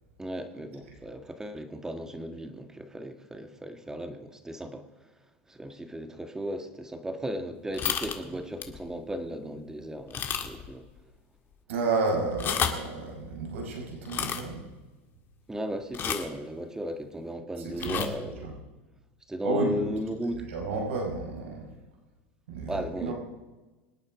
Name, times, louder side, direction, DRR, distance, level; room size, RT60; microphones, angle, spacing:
voice 1, 0.2-5.1 5.5-10.9 15.5-18.4 19.3-20.4 22.7-23.1, equal, 10° right, 7 dB, 1.8 m, -36 dB
sound 1, 7.7-8.2 8.6-8.8 9.3-9.4 10.1-10.7 11.0-11.1 12.3-12.9 14.0-14.4 15.9-16.4 17.8-18.1, left 8 dB, 35° left, 1.8 m, -31 dB
voice 2, 11.7-14.6 17.6-18.6 19.4-19.8 20.5-21.7 22.5-23.1, right 3 dB, 90° right, 0 dB, 5.3 m, -31 dB
26.0 x 8.8 x 5.0 m, 1.2 s
supercardioid pair, 120°, 7 cm